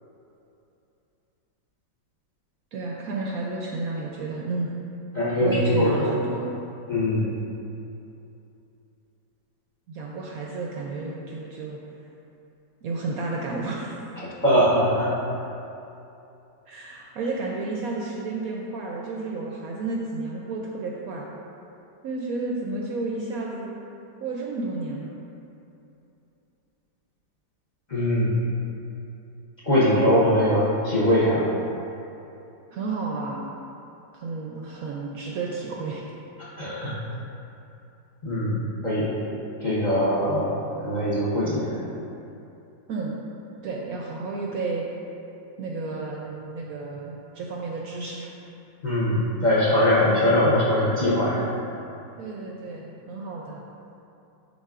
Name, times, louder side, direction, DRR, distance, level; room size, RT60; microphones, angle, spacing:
voice 1, 2.7-4.7 5.4-6.4 9.9-11.8 12.8-14.0 16.7-21.3 22.0-23.7 24.2-25.2 32.7-33.5 34.1-36.0 42.9-43.2 43.6-44.9 45.6-48.3 52.2-53.6, right 3 dB, 70° right, -2 dB, 0.9 m, -31 dB
voice 2, 5.1-5.9 6.9-7.3 14.4-15.1 27.9-28.4 29.7-31.4 36.6-36.9 38.2-39.1 39.6-40.5 40.8-41.7 48.8-51.4, left 1 dB, 35° left, -8 dB, 0.7 m, -21 dB
10.5 x 3.9 x 2.4 m, 2.8 s
omnidirectional pair, 1.9 m